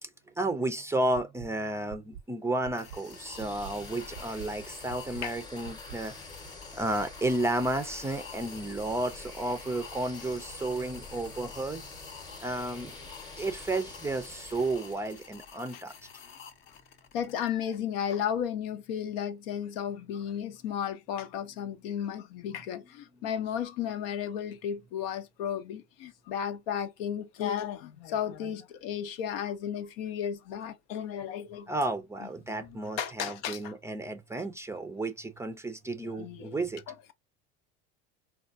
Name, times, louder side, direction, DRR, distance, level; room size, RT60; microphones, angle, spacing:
voice 1, 0.4-6.2 6.7-11.8 12.4-12.9 13.4-15.9 31.7-36.8, right 2 dB, 10° right, 0.4 m, -32 dB
sound 1, 1.1-1.5 1.9-2.2 2.6-3.0 3.4-3.7 4.1-4.5 4.9-5.2 5.6-6.0, right 9 dB, 75° right, 0.5 m, -44 dB
sound 2, 2.8-17.5, left 7 dB, 45° left, 0.7 m, -50 dB
sound 3, 2.8-15.5, left 3 dB, 15° left, 0.8 m, -46 dB
voice 2, 17.1-31.7 32.6-33.8 36.0-36.9, left 9 dB, 75° left, 0.7 m, -34 dB
3.7 x 2.3 x 2.4 m
supercardioid pair, 110°, 30 cm